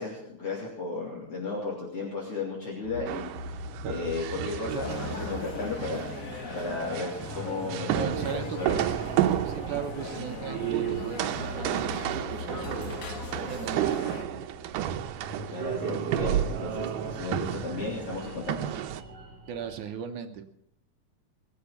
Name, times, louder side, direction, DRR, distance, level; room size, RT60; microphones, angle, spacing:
voice 1, 0.0-3.6 3.9-6.1 6.5-8.8 15.5-18.7, left 3 dB, 45° left, -4 dB, 4.0 m, -34 dB
sound 1, 2.8-19.8, left 1 dB, 55° right, 4.3 m, -42 dB
sound 2, 3.1-19.0, right 12 dB, 90° right, 2.4 m, -32 dB
sound 3, 4.8-14.2, left 4 dB, 90° left, 0.7 m, -40 dB
voice 2, 7.9-8.8 9.4-13.0 13.3-14.0 19.5-20.5, right 8 dB, 75° right, 6 dB, 2.4 m, -37 dB
21.5 x 8.0 x 7.1 m, 0.73 s
omnidirectional pair, 3.7 m